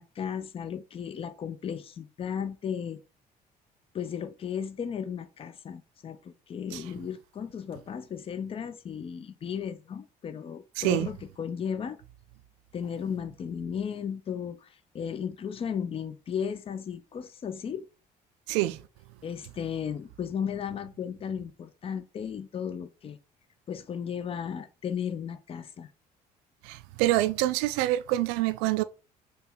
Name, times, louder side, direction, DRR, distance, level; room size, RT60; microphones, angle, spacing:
voice 1, 0.0-3.0 3.9-12.0 12.7-14.7 14.9-17.9 19.2-23.2 23.7-25.9, left 7 dB, 25° left, 0.5 m, -35 dB
voice 2, 10.8-11.1 18.5-18.8 26.6-28.8, right 16 dB, 55° right, 0.4 m, -26 dB
4.4 x 2.9 x 3.7 m
figure-of-eight pair, 50°, 21 cm